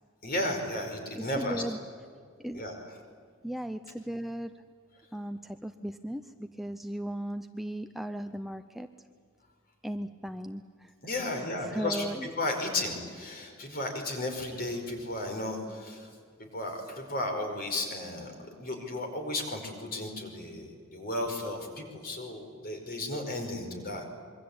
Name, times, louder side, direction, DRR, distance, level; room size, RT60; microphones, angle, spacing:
voice 1, 0.2-1.6 2.5-2.8 11.0-16.1 16.4-24.0, left 1 dB, 45° left, 4 dB, 5.1 m, -34 dB
voice 2, 1.1-1.8 2.4-2.6 3.4-4.5 5.1-8.9 9.8-10.9 11.2-12.3, right 1 dB, ahead, 7 dB, 0.6 m, -37 dB
26.5 x 23.5 x 8.8 m, 2.1 s
head